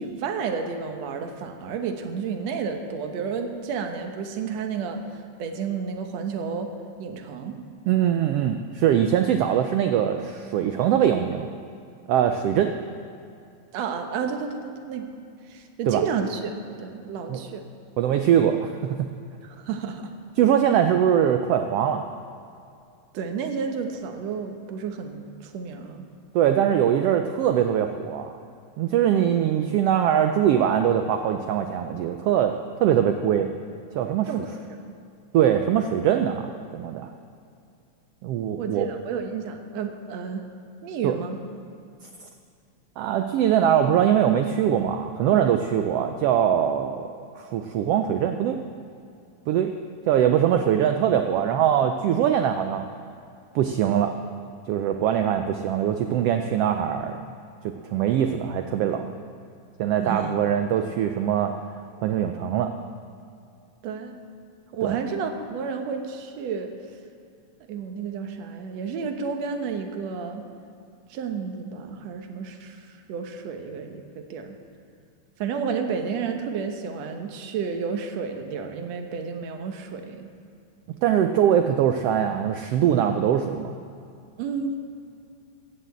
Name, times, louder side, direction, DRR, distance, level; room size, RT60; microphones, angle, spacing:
voice 1, 0.0-5.0 5.4-6.7 7.0-7.6 13.7-15.1 15.5-17.7 19.4-20.1 23.1-26.1 34.3-34.5 38.6-40.4 40.8-41.4 60.0-60.3 63.8-64.2 64.7-66.7 67.7-70.4 71.1-72.8 73.1-74.6 75.4-80.3 84.4-84.8, right 6 dB, 65° right, 5 dB, 2.1 m, -31 dB
voice 2, 7.9-11.5 12.1-12.7 15.9-16.0 17.3-17.4 18.0-19.1 20.4-22.0 26.3-28.3 28.8-32.5 32.8-33.5 33.9-34.3 35.3-37.1 38.2-38.9 41.0-41.1 43.0-47.1 47.4-48.6 49.5-49.7 50.1-52.8 53.5-54.1 54.7-57.2 57.8-59.1 59.8-61.5 62.0-62.7 64.8-65.0 81.0-83.8, right 9 dB, 85° right, 6 dB, 1.3 m, -22 dB
15.0 x 6.6 x 8.1 m, 2.4 s
omnidirectional pair, 3.4 m